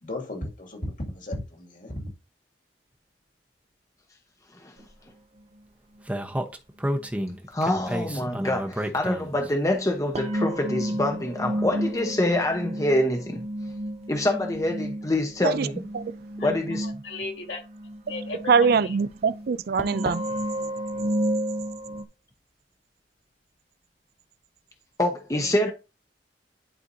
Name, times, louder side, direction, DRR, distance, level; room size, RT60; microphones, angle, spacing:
voice 1, 0.0-2.1, left 1 dB, 50° left, 2.3 m, -35 dB
sound 1, 4.8-4.9 6.9-7.1 10.2-22.0, right 1 dB, 40° right, 0.8 m, -32 dB
Speech, 6.1-9.5, equal, 10° right, 0.9 m, -30 dB
voice 2, 7.5-13.4 14.1-15.9 16.4-16.9 25.0-25.7, left 1 dB, 20° left, 0.9 m, -25 dB
voice 3, 16.8-17.6 18.1-19.0 25.3-25.7, left 3 dB, 70° left, 3.2 m, -36 dB
voice 4, 18.5-20.3, right 5 dB, 60° right, 0.4 m, -22 dB
11.0 x 4.4 x 2.7 m
head